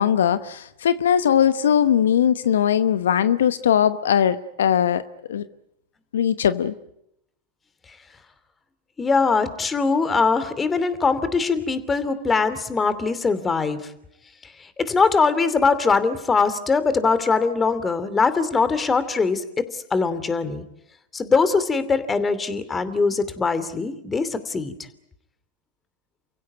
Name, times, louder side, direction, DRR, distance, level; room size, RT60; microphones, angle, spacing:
voice 1, 0.0-5.0 5.3-5.5 6.1-6.7, left 9 dB, 80° left, 1.0 m, -20 dB
voice 2, 9.0-13.8 14.6-20.6 21.1-24.7, left 4 dB, 20° left, 2.7 m, -22 dB
29.0 x 16.5 x 9.5 m
hypercardioid pair, 95°, 0 cm